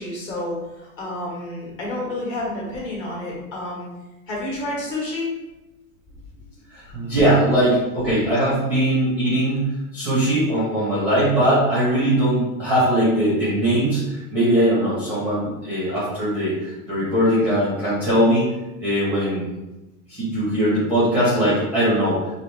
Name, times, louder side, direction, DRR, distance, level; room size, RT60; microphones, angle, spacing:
voice 1, 0.0-3.9 4.3-5.3 6.8-7.1, left 1 dB, 30° left, -5 dB, 1.3 m, -30 dB
voice 2, 6.7-18.4 18.8-19.5 20.1-22.3, right 1 dB, 5° right, -9 dB, 0.7 m, -20 dB
4.9 x 2.6 x 3.2 m, 1.0 s
supercardioid pair, 175°, 41 cm